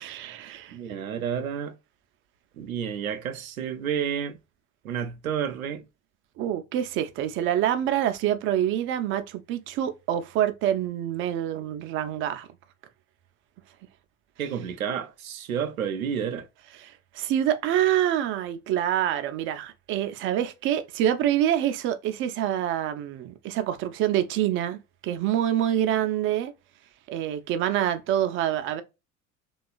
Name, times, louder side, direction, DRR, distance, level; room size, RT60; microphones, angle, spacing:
voice 1, 0.0-0.8 6.4-12.5 16.8-26.5 27.1-28.8, right 11 dB, 30° right, 0.4 m, -26 dB
voice 2, 0.7-1.7 2.6-4.4 4.8-5.8 14.4-16.5, right 8 dB, 80° right, 0.6 m, -30 dB
2.9 x 2.3 x 2.3 m
figure-of-eight pair, 65°, 42 cm